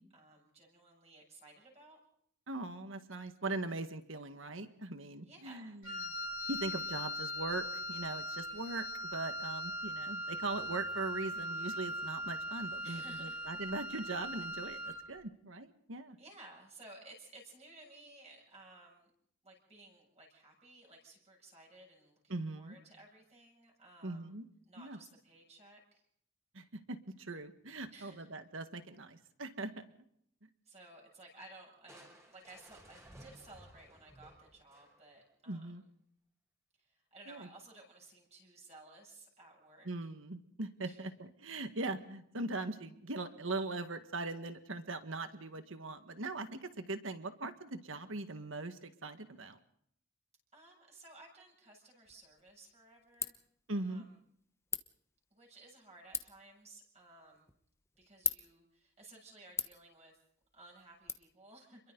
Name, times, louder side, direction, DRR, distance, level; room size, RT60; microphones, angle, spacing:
voice 1, 0.1-2.0 5.2-5.8 12.8-13.4 16.2-19.1 19.4-24.3 24.6-26.0 27.9-28.4 30.7-35.7 36.8-39.9 40.8-41.0 50.5-53.3 53.7-54.1 55.3-57.5 58.0-60.2 60.5-61.8, right 2 dB, 30° right, 0 dB, 7.3 m, -57 dB
voice 2, 2.5-6.1 6.5-8.9 9.1-16.2 22.3-22.8 24.0-24.5 24.8-25.0 26.5-29.8 35.5-35.8 37.3-37.5 39.9-49.6 53.7-54.0, right 2 dB, 70° right, 8 dB, 1.7 m, -40 dB
Wind instrument woodwind instrument, 5.8-15.1, equal, 65° left, 3.1 m, -40 dB
Crushing, 31.9-35.3, right 1 dB, 15° right, 5.2 m, -58 dB
Ratchet pawl, 52.0-61.1, left 5 dB, 15° left, 1.0 m, -44 dB
29.5 x 22.5 x 4.0 m, 0.68 s
head